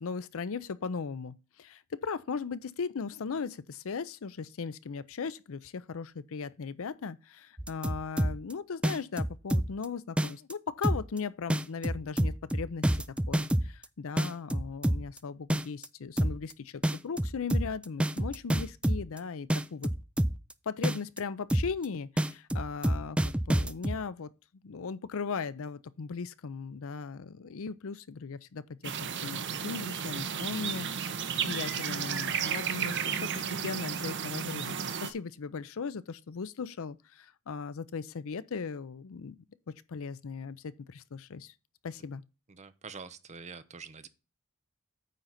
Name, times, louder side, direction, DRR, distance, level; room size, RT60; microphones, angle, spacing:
voice 1, 0.0-12.9 13.3-19.9 20.7-24.3 24.6-31.2 31.4-39.4 39.7-41.5 41.8-42.2, left 5 dB, 65° left, 0.5 m, -38 dB
sound 1, 7.6-8.5 8.8-9.8 10.2-10.5 10.8-11.2 11.5-13.8 14.2-15.2 15.5-15.9 16.2-16.5 16.8-19.2 19.5-20.5 20.8-21.2 21.5-21.8 22.2-24.0, right 1 dB, 5° right, 0.4 m, -27 dB
sound 2, 28.8-35.1, right 7 dB, 55° right, 0.9 m, -33 dB
voice 2, 42.5-44.1, right 5 dB, 30° right, 0.8 m, -45 dB
9.2 x 3.9 x 5.7 m
head